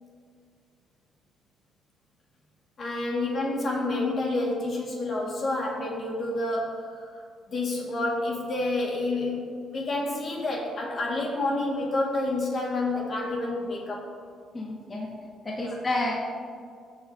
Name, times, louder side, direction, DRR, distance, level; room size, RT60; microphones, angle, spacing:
voice 1, 2.8-7.2 7.5-14.0 15.6-15.7, left 2 dB, 50° left, -2 dB, 2.0 m, -29 dB
voice 2, 14.5-15.1 15.4-16.1, left 2 dB, 30° left, -3 dB, 1.8 m, -30 dB
17.5 x 6.4 x 2.8 m, 2.2 s
cardioid pair, 90°, 0 cm